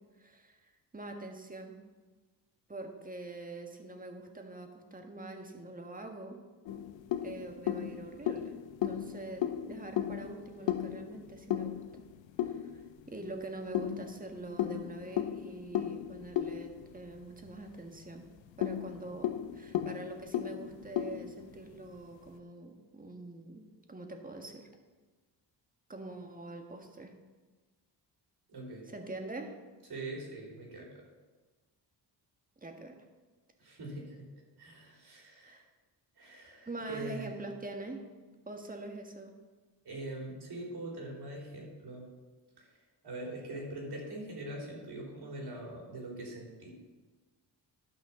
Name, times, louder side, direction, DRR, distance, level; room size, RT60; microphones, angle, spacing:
voice 1, 0.2-1.8 2.7-6.4 7.2-12.1 12.4-12.7 13.1-18.3 18.6-24.7 25.9-27.1 28.9-29.5 32.6-33.0 35.4-35.6 36.6-38.0 38.4-39.3, right 2 dB, 20° right, 4 dB, 1.6 m, -44 dB
sound 1, 6.6-13.1 13.7-17.6 17.9-18.0 18.4-22.0, left 11 dB, 90° left, 0.7 m, -36 dB
voice 2, 28.5-28.8 29.9-31.0 33.6-34.3 34.6-35.6 36.2-37.3 39.9-42.0 42.6-46.7, right 1 dB, 60° right, -1 dB, 3.5 m, -43 dB
12.0 x 5.8 x 5.7 m, 1.3 s
cardioid pair, 100°, 44 cm